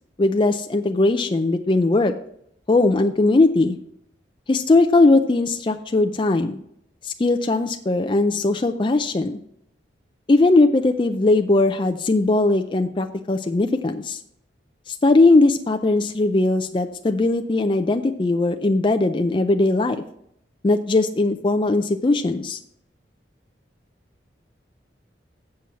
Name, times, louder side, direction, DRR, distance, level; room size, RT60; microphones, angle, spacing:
voice 1, 0.2-2.1 2.7-3.8 4.5-6.6 7.0-9.4 10.3-14.2 14.9-20.0 20.6-22.6, left 2 dB, 25° left, 6 dB, 0.4 m, -19 dB
7.6 x 6.9 x 5.8 m, 0.73 s
head